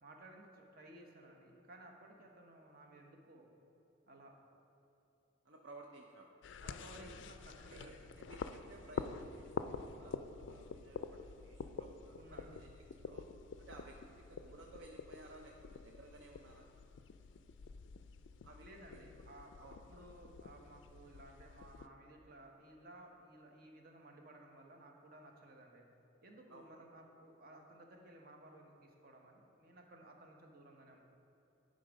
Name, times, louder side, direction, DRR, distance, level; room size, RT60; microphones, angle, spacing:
voice 1, 0.0-3.5 4.1-4.3 6.6-8.1 12.2-12.6 18.6-25.8 26.2-31.0, right 1 dB, 50° right, 2 dB, 0.9 m, -57 dB
voice 2, 5.4-6.3 6.9-7.1 7.7-13.3 13.6-16.7 18.4-19.1 19.6-19.8 26.5-26.7, right 2 dB, 70° right, 1 dB, 0.5 m, -57 dB
sound 1, 6.4-21.9, left 5 dB, 65° left, 0.3 m, -48 dB
10.5 x 3.9 x 5.1 m, 3.0 s
head